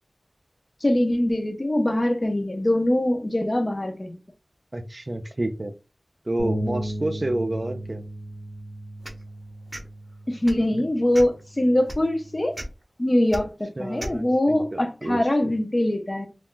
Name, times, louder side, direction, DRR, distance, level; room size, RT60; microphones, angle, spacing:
voice 1, 0.8-4.2 10.3-12.6 13.0-16.3, left 1 dB, 35° left, 0.6 m, -23 dB
voice 2, 4.7-5.7 6.3-8.0 10.7-10.8 13.8-15.5, right 1 dB, 45° right, 0.4 m, -29 dB
sound 1, 6.4-12.6, equal, 85° left, 0.7 m, -35 dB
sound 2, 9.0-9.2 9.7-9.9 10.4-10.7 11.1-11.4 11.9-12.0 12.5-12.7 13.3-13.4 14.0-14.2, equal, 20° right, 0.7 m, -34 dB
2.4 x 2.2 x 3.7 m
wide cardioid pair, 60°, 0 cm